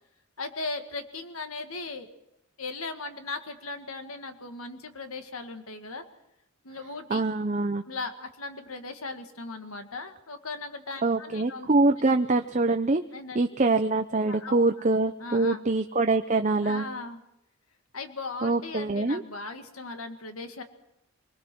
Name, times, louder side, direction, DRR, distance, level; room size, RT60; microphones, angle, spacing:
voice 1, 0.4-2.1 2.6-6.0 6.6-7.2 7.9-11.7 13.1-13.4 14.3-14.9 15.2-15.6 16.6-17.2 17.9-20.6, left 3 dB, 90° left, 7 dB, 2.0 m, -38 dB
voice 2, 7.1-7.8 11.0-13.0 13.3-16.8 18.4-19.2, right 3 dB, 35° right, 7 dB, 0.7 m, -24 dB
25.0 x 20.0 x 6.2 m, 0.84 s
head